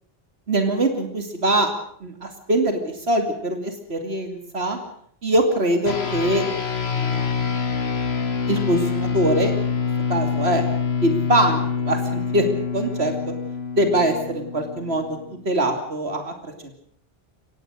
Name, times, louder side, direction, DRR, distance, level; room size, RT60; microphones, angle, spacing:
voice 1, 0.5-1.7 2.0-4.8 5.2-6.4 6.9-7.3 8.5-9.5 10.1-10.7 11.0-12.4 12.7-13.1 13.8-15.0 15.4-16.5, right 1 dB, 90° right, 6 dB, 3.0 m, -22 dB
sound 1, 5.9-15.5, left 6 dB, 80° left, 1.9 m, -26 dB
24.0 x 19.0 x 6.4 m, 0.63 s
omnidirectional pair, 1.0 m